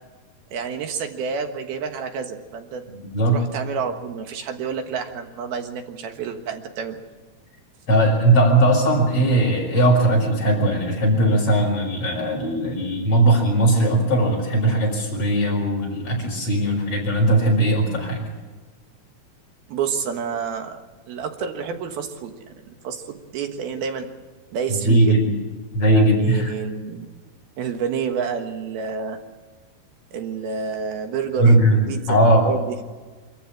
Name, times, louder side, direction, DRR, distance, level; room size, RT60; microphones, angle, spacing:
voice 1, 0.5-2.8 3.3-7.0 19.7-22.3 22.8-24.1 24.5-25.2 25.8-27.1 27.6-29.2 30.1-32.2 32.4-32.8, right 6 dB, 75° right, 5 dB, 3.3 m, -29 dB
voice 2, 2.9-3.4 7.9-18.3 24.7-25.3 25.7-26.5 31.4-31.8 32.1-32.5, right 1 dB, 35° left, 0 dB, 6.6 m, -19 dB
25.5 x 14.5 x 8.6 m, 1.3 s
omnidirectional pair, 4.5 m